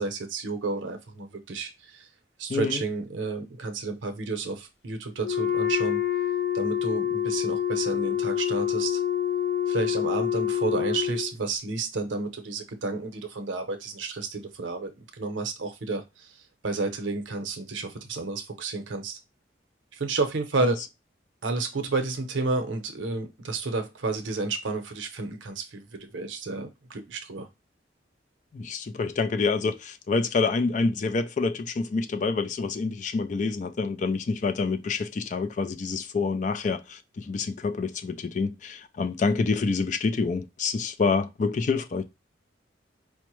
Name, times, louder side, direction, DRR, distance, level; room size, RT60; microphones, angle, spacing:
voice 1, 0.0-2.0 2.4-6.0 6.5-9.0 9.7-14.9 15.2-16.0 16.6-19.2 20.0-20.8 21.4-27.5, right 3 dB, 90° right, 0.7 m, -31 dB
voice 2, 2.5-2.8 20.6-20.8 28.5-42.0, left 4 dB, 40° left, 0.3 m, -27 dB
Wind instrument woodwind instrument, 5.2-11.3, left 10 dB, 75° left, 0.8 m, -27 dB
4.5 x 2.1 x 3.0 m
head